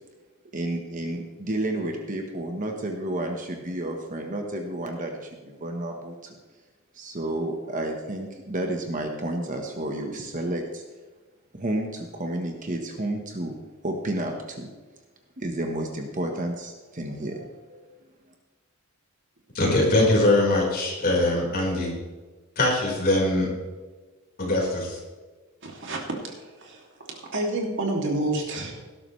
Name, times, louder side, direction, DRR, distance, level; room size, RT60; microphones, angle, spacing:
voice 1, 0.5-6.4 6.9-10.8 11.5-13.6 13.8-14.7 15.4-17.8, right 1 dB, 35° right, 3 dB, 1.3 m, -31 dB
voice 2, 19.5-21.9 22.6-23.5 24.4-25.0, left 2 dB, 45° left, -3 dB, 4.8 m, -22 dB
voice 3, 25.6-28.7, right 2 dB, 55° right, 0 dB, 2.7 m, -29 dB
18.0 x 12.0 x 3.3 m, 1.3 s
head